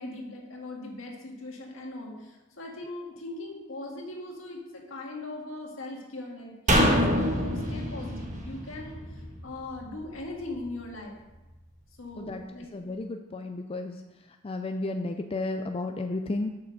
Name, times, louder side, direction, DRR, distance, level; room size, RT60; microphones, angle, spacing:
voice 1, 0.0-11.2 12.0-12.7, left 2 dB, 70° left, 0 dB, 1.9 m, -40 dB
sound 1, 6.7-10.0 10.3-10.4, equal, 35° right, 1.4 m, -26 dB
voice 2, 12.7-14.0 14.4-16.6, left 2 dB, 30° left, 5 dB, 0.4 m, -32 dB
7.4 x 5.9 x 6.4 m, 1.1 s
head